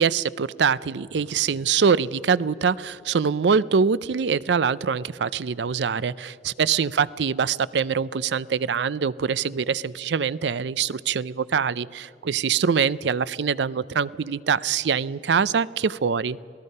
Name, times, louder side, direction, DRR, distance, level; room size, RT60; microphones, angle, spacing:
voice 1, 0.0-16.4, right 6 dB, 70° right, 19 dB, 0.5 m, -24 dB
27.0 x 18.0 x 5.4 m, 2.7 s
head